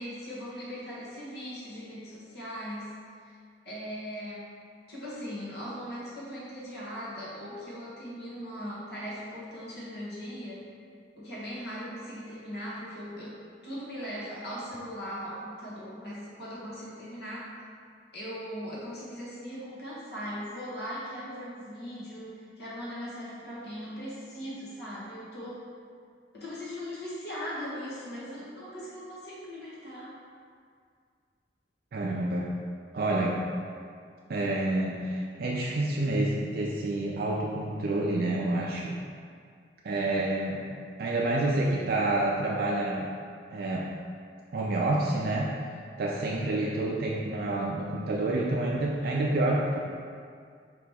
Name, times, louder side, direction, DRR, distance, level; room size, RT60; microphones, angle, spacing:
voice 1, 0.0-2.9 3.2-3.4 3.6-4.5 4.9-10.6 11.2-17.5 18.1-25.6 26.3-30.1 46.3-46.6, equal, 65° left, -8 dB, 1.2 m, -39 dB
voice 2, 31.9-32.5 32.9-33.4 34.3-38.9 39.8-40.6 41.0-43.1 43.5-43.9 44.5-45.5 46.0-49.8, right 2 dB, 55° right, -3 dB, 0.4 m, -28 dB
4.9 x 2.9 x 3.5 m, 2.2 s
head